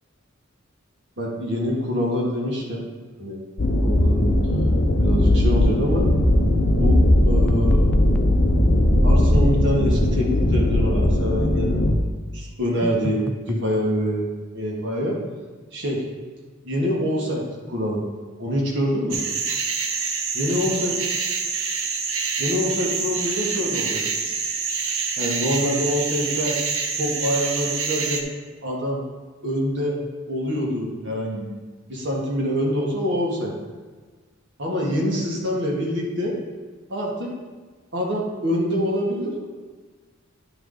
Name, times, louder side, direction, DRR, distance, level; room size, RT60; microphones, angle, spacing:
voice 1, 1.2-2.8 3.2-3.4 3.8-4.2 5.0-6.1 6.7-7.0 7.2-7.8 9.0-11.9 12.3-14.3 14.5-15.2 15.7-16.0 16.6-18.1 18.4-19.2 20.3-20.9 22.4-24.3 25.2-26.5 27.0-28.2 28.6-29.0 29.4-30.0 30.3-31.6 31.9-33.5 34.6-36.3 36.9-37.3 37.9-39.5, equal, 60° right, -2 dB, 1.7 m, -25 dB
sound 1, 3.6-12.0, left 1 dB, 45° left, 0.7 m, -18 dB
sound 2, 7.5-8.4 12.8-13.7, left 1 dB, 5° left, 0.3 m, -31 dB
sound 3, 19.1-28.2, right 5 dB, 75° right, 0.8 m, -26 dB
10.5 x 4.9 x 3.9 m, 1.4 s
head